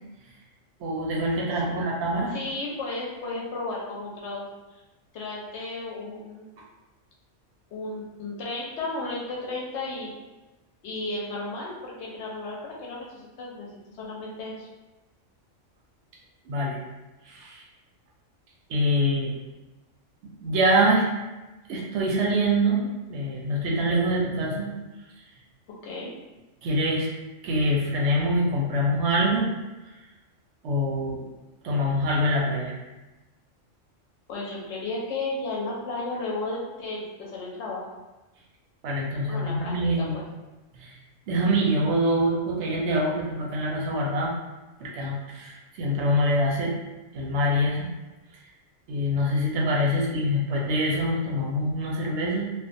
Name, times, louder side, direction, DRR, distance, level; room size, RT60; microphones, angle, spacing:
voice 1, 0.8-2.3 16.4-16.8 17.3-17.6 18.7-19.3 20.4-21.0 21.7-24.7 26.6-27.1 27.4-29.5 30.6-31.2 31.6-32.7 38.8-40.1 40.8-40.9 41.3-44.3 44.8-46.7 47.1-47.9 48.9-52.5, equal, 65° right, -2 dB, 0.8 m, -25 dB
voice 2, 2.3-4.5 5.1-6.5 7.7-10.1 10.8-14.7 25.8-26.1 34.3-37.9 39.3-40.2 49.9-50.2, left 2 dB, 65° left, -3 dB, 0.8 m, -34 dB
2.3 x 2.1 x 2.5 m, 1.1 s
omnidirectional pair, 1.3 m